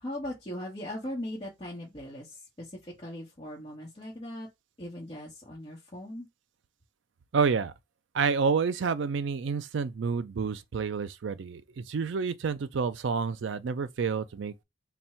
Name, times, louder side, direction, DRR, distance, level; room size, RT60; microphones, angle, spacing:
voice 1, 0.0-4.5 4.8-6.3, left 1 dB, 30° left, 1.1 m, -39 dB
voice 2, 7.3-7.7 8.1-14.6, right 5 dB, 65° right, 0.4 m, -29 dB
3.5 x 2.2 x 4.3 m
head